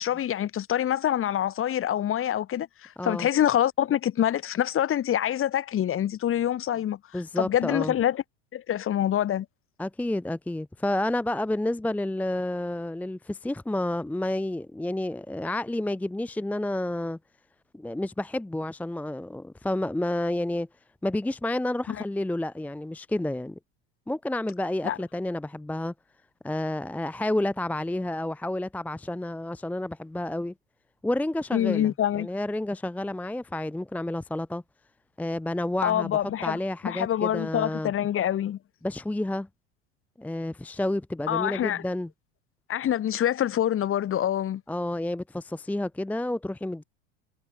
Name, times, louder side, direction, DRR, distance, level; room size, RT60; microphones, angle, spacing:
voice 1, 0.0-7.0 7.4-8.2 8.5-9.5 21.9-22.0 24.8-25.0 31.5-32.3 35.8-36.6 36.8-38.6 41.3-41.8 42.7-44.6, left 11 dB, 35° left, 2.2 m, -26 dB
voice 2, 3.0-3.3 7.1-7.9 9.8-17.2 17.7-20.7 21.0-23.6 24.1-25.9 26.4-30.5 31.0-34.6 35.2-37.9 38.8-39.5 40.2-42.1 44.7-46.8, left 1 dB, 5° left, 0.7 m, -30 dB
hypercardioid pair, 85°, 35 cm